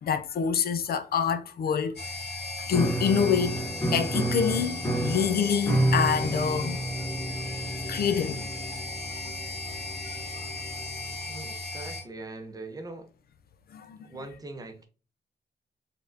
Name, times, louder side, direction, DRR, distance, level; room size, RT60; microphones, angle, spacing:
voice 1, 0.0-2.0 2.7-3.6 3.9-6.8 7.8-8.5 9.2-9.3 10.3-10.5 13.7-14.1, left 7 dB, 60° left, 0.5 m, -26 dB
sound 1, 1.9-12.0, left 2 dB, 75° left, 1.9 m, -36 dB
Piano, 2.7-11.2, right 1 dB, 15° left, 0.8 m, -31 dB
voice 2, 11.3-13.1 14.0-14.9, right 2 dB, 20° right, 0.7 m, -41 dB
4.4 x 3.5 x 2.6 m
wide cardioid pair, 170°, 18 cm